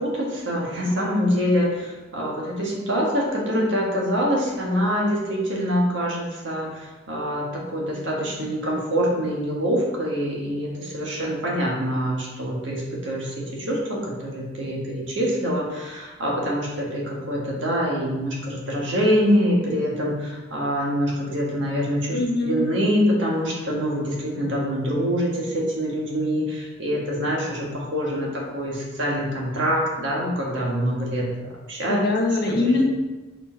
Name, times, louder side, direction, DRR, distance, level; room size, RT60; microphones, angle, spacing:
voice 1, 0.0-32.0 32.4-32.8, equal, 70° right, -3 dB, 1.7 m, -25 dB
voice 2, 22.1-22.6 31.9-32.8, left 2 dB, 60° left, -1 dB, 1.3 m, -22 dB
5.1 x 4.8 x 4.5 m, 1.1 s
head